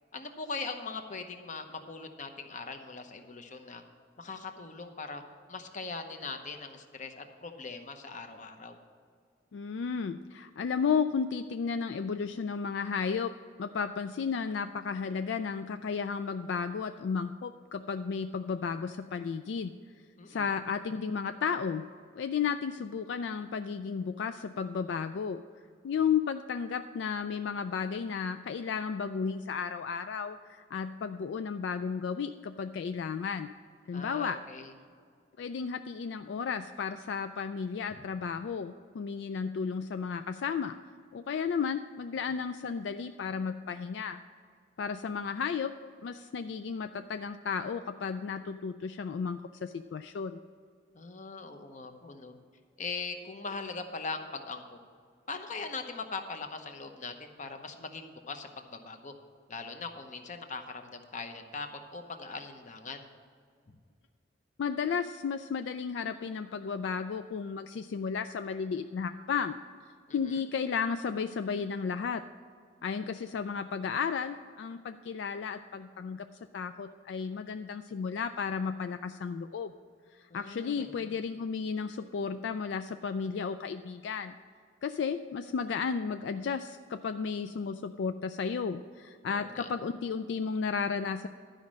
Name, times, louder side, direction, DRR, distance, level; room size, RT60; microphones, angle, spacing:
voice 1, 0.1-3.8 4.2-5.2 5.5-8.8 20.2-20.5 33.9-34.7 50.9-52.3 52.8-54.8 55.3-59.1 59.5-63.1 70.1-70.4 80.3-81.1 89.2-89.7, left 4 dB, 45° left, 6 dB, 0.9 m, -41 dB
voice 2, 9.5-13.3 13.6-19.7 20.3-21.9 22.2-25.4 25.8-33.5 33.9-34.4 35.4-40.7 41.1-44.2 44.8-45.7 46.0-50.4 64.6-69.6 70.1-72.2 72.8-76.3 76.5-79.7 80.2-84.3 84.8-91.3, left 6 dB, 70° left, 9 dB, 0.3 m, -33 dB
11.5 x 5.2 x 7.4 m, 2.1 s
head